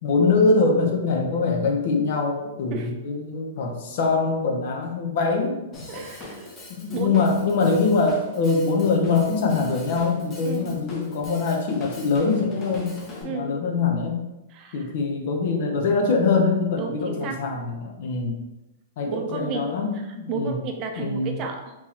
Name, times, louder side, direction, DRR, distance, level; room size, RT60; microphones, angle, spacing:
voice 1, 0.0-5.6 5.9-6.0 6.7-12.9 13.2-14.2 14.7-18.4 19.0-20.5 21.0-21.4, left 4 dB, 60° left, 2 dB, 0.7 m, -23 dB
Drum kit / Drum, 5.7-13.2, left 1 dB, 25° left, 0.9 m, -42 dB
voice 2, 5.9-6.6 6.9-7.2 10.4-10.8 13.2-13.5 14.5-14.9 16.8-17.4 19.1-19.7 19.9-21.7, right 5 dB, 35° right, 4 dB, 0.5 m, -32 dB
3.6 x 3.0 x 2.8 m, 0.97 s
hypercardioid pair, 130°, 0 cm